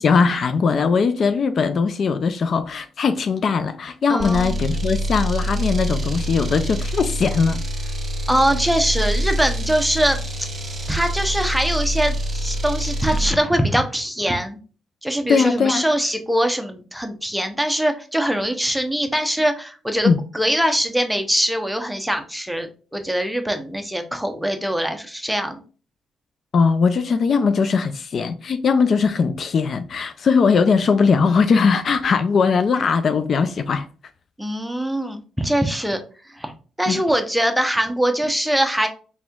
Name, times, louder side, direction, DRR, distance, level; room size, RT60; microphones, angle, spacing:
voice 1, 0.0-7.6 15.3-15.8 20.0-20.2 26.5-33.9 36.9-37.0, left 5 dB, 50° left, 0.3 m, -19 dB
voice 2, 4.1-4.6 8.3-10.2 10.9-14.6 15.0-20.1 20.3-25.6 34.4-36.0 36.3-36.5 36.8-38.9, right 1 dB, 5° right, 0.7 m, -22 dB
sound 1, 4.2-13.4, right 1 dB, 35° right, 1.1 m, -25 dB
4.2 x 3.5 x 2.3 m
cardioid pair, 90°, 0 cm